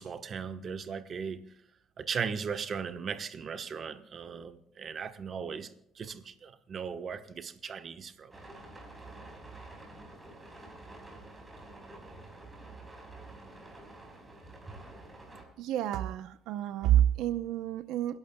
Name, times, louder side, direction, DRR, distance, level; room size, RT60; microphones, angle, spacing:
voice 1, 0.0-1.5 2.0-5.7 5.9-8.3, right 6 dB, 40° right, 1.1 m, -37 dB
sound 1, 8.3-15.4, right 2 dB, 15° right, 4.5 m, -48 dB
voice 2, 15.6-18.2, right 11 dB, 85° right, 0.7 m, -28 dB
28.5 x 11.5 x 2.3 m
cardioid pair, 125°, 0 cm